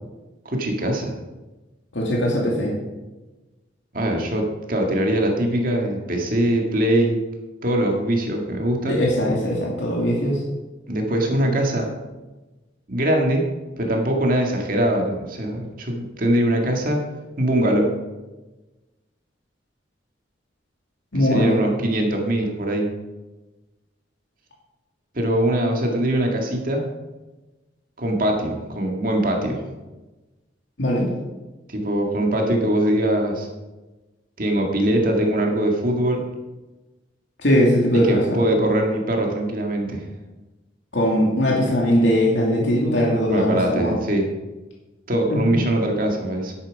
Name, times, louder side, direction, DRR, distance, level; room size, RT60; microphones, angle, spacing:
voice 1, 0.5-1.1 3.9-7.2 7.6-9.0 10.9-11.9 12.9-13.4 13.8-17.0 17.4-17.9 21.1-22.9 25.1-26.8 28.0-29.6 31.7-33.5 34.4-36.2 37.9-40.1 43.3-44.3 45.1-46.5, right 1 dB, 50° right, 1 dB, 1.9 m, -22 dB
voice 2, 1.9-2.7 8.8-10.4 21.1-21.6 30.8-31.1 37.4-38.4 40.9-43.9 45.3-45.4, equal, 75° left, -3 dB, 2.6 m, -20 dB
11.0 x 8.8 x 5.3 m, 1.1 s
head